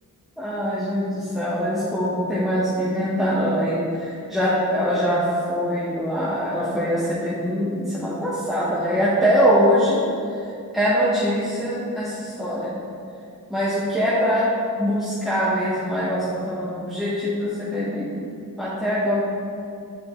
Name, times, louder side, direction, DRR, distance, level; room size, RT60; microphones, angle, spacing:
voice 1, 0.4-10.0 10.3-10.5 10.7-12.8 13.5-14.5 14.8-18.2 18.6-19.1, equal, ahead, -10 dB, 1.4 m, -23 dB
8.5 x 5.2 x 3.9 m, 2.5 s
wide cardioid pair, 100°, 33 cm